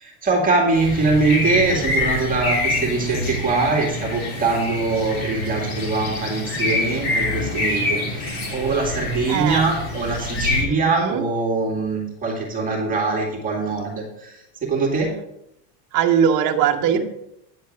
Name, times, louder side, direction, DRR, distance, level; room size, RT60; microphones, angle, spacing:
voice 1, 0.0-14.3 14.6-15.1 16.9-17.0, right 3 dB, 15° right, -1 dB, 2.2 m, -22 dB
sound 1, 0.7-10.6, left 2 dB, 45° left, 3.0 m, -26 dB
voice 2, 9.3-9.7 10.7-11.2 15.9-17.0, right 8 dB, 35° right, 4 dB, 1.1 m, -20 dB
9.6 x 4.5 x 6.5 m, 0.80 s
supercardioid pair, 150°, 50 cm